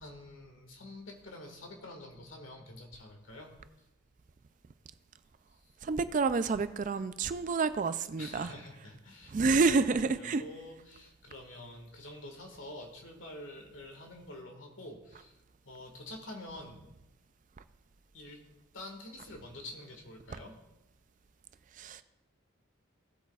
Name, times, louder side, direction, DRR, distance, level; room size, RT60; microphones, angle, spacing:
voice 1, 0.0-3.5 8.2-15.4 15.7-16.9 18.1-18.4 18.7-20.6, left 1 dB, 65° left, 2 dB, 1.8 m, -47 dB
voice 2, 5.8-8.5 9.3-10.4 21.8-22.0, right 4 dB, 35° right, 12 dB, 0.3 m, -28 dB
16.5 x 8.2 x 2.4 m, 0.98 s
head